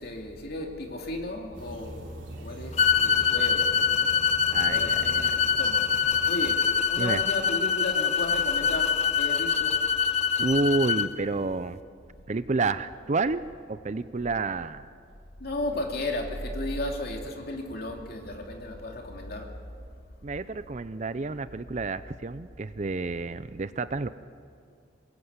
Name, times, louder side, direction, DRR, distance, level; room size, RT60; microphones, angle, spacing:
voice 1, 0.0-2.1 2.4-4.1 4.5-10.0 15.4-19.6, left 1 dB, 50° left, 2.7 m, -35 dB
sound 1, 1.5-6.6, right 1 dB, 80° right, 3.1 m, -42 dB
sound 2, 2.8-11.1, left 7 dB, 35° left, 0.6 m, -24 dB
voice 2, 4.5-5.2 7.0-7.2 10.4-11.8 12.3-13.4 13.7-14.8 20.2-24.1, right 3 dB, 35° right, 0.5 m, -29 dB
24.0 x 21.0 x 8.1 m
head